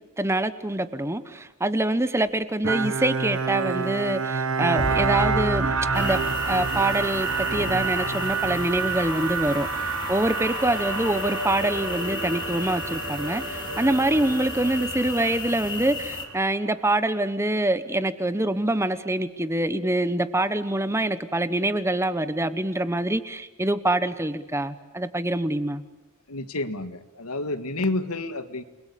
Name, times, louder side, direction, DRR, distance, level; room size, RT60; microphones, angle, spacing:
voice 1, 0.2-6.2 6.5-9.7 10.1-25.8, right 1 dB, 10° right, 12 dB, 1.0 m, -25 dB
Bowed string instrument, 2.6-9.3, right 4 dB, 70° right, 1.1 m, -27 dB
sound 1, 4.8-16.5, right 4 dB, 85° right, 4.8 m, -31 dB
sound 2, 5.9-16.2, left 4 dB, 20° left, 2.7 m, -35 dB
voice 2, 26.3-28.6, left 2 dB, 90° left, 10 dB, 1.8 m, -29 dB
29.5 x 21.5 x 8.4 m, 1.0 s
head